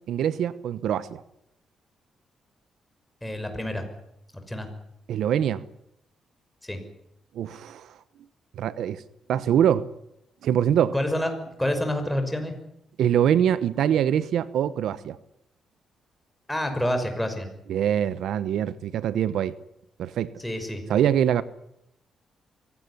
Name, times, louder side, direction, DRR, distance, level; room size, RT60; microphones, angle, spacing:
voice 1, 0.1-1.2 5.1-5.6 7.3-7.9 8.6-9.0 9.3-9.9 10.4-10.9 13.0-15.2 17.7-19.6 20.0-20.3 20.9-21.4, right 9 dB, 80° right, 16 dB, 1.0 m, -23 dB
voice 2, 3.2-3.8 4.5-4.7 6.6-6.8 10.9-11.3 11.6-12.5 16.5-17.5 20.4-20.8, left 1 dB, 5° left, 6 dB, 5.7 m, -27 dB
23.5 x 17.5 x 9.8 m, 0.81 s
cardioid pair, 95°, 0 cm